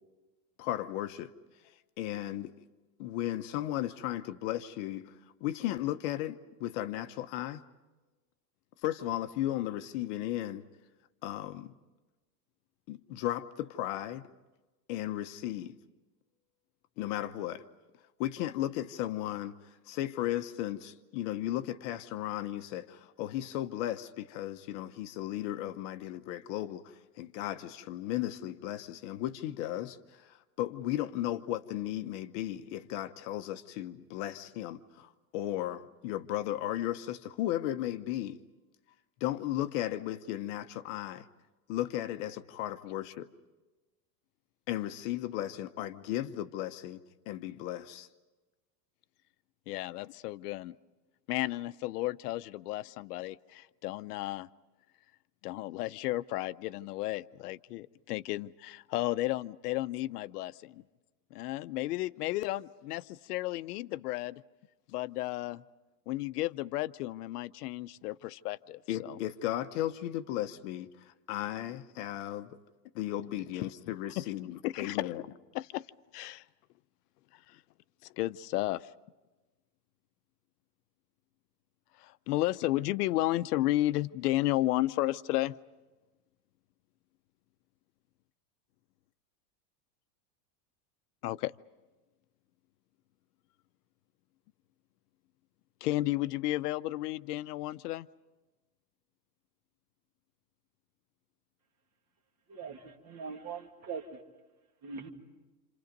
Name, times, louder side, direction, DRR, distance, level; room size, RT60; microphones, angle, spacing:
voice 1, 0.6-1.3 2.0-2.5 3.0-7.6 8.8-10.6 11.2-11.7 12.9-14.3 14.9-15.7 17.0-17.6 18.2-38.4 39.2-41.3 41.7-43.3 44.7-47.0 47.3-48.1 68.9-72.6 72.9-75.2, left 13 dB, 45° left, 0.9 m, -35 dB
voice 2, 49.7-50.7 51.3-54.5 55.4-60.8 61.3-64.4 64.9-65.6 66.1-69.2 74.2-74.3 74.6-75.1 75.5-75.8 76.1-76.4 77.5-77.6 78.2-78.9 82.0-85.6 91.2-91.5 95.8-98.1, left 16 dB, 70° left, 0.7 m, -33 dB
voice 3, 102.5-104.2 104.8-105.1, right 5 dB, 30° right, 2.4 m, -42 dB
29.0 x 28.0 x 5.3 m
supercardioid pair, 160°, 48 cm